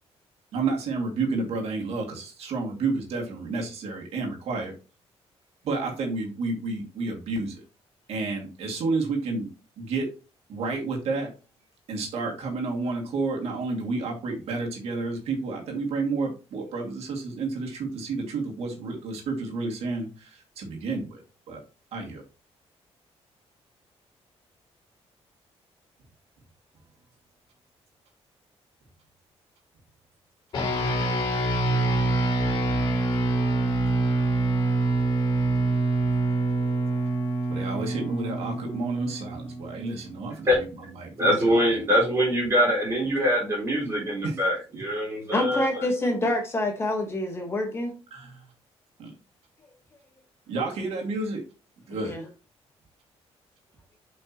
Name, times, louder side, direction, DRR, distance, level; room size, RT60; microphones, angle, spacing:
voice 1, 0.5-4.7 5.6-7.6 8.1-9.5 9.8-10.1 10.5-11.3 11.9-21.6 21.9-22.2 37.5-40.7 41.0-41.6 44.2-44.4 48.1-48.4 49.0-49.2 50.5-51.4 51.9-52.3, right 3 dB, 70° right, 0 dB, 2.3 m, -30 dB
sound 1, 30.5-40.2, right 2 dB, 45° left, 2.6 m, -25 dB
voice 2, 41.2-45.9, equal, 25° right, -3 dB, 4.0 m, -23 dB
voice 3, 45.3-47.9 51.9-52.2, left 1 dB, 25° left, 2 dB, 1.3 m, -27 dB
7.9 x 5.3 x 3.0 m, 0.32 s
cardioid pair, 175°, 11 cm